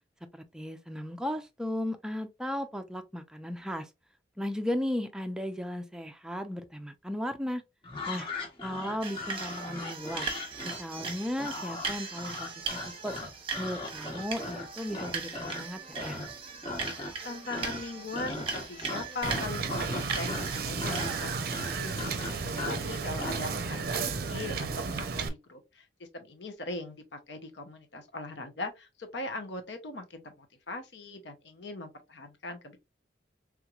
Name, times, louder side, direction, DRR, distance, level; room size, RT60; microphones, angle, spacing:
voice 1, 0.3-3.9 4.4-7.6 8.1-8.3 8.6-10.3 10.6-13.2 13.6-16.2, left 1 dB, 5° right, 0.4 m, -35 dB
sound 1, 7.8-15.7 15.9-16.4 16.6-17.2 17.5-23.5, left 2 dB, 30° left, 1.1 m, -38 dB
sound 2, 9.0-23.9, right 5 dB, 30° right, 0.9 m, -40 dB
voice 2, 17.2-25.8 26.1-32.8, left 2 dB, 75° left, 0.7 m, -40 dB
Wind / Boat Water vehicle, 19.2-25.3, right 4 dB, 55° right, 0.5 m, -33 dB
3.5 x 3.0 x 2.4 m
head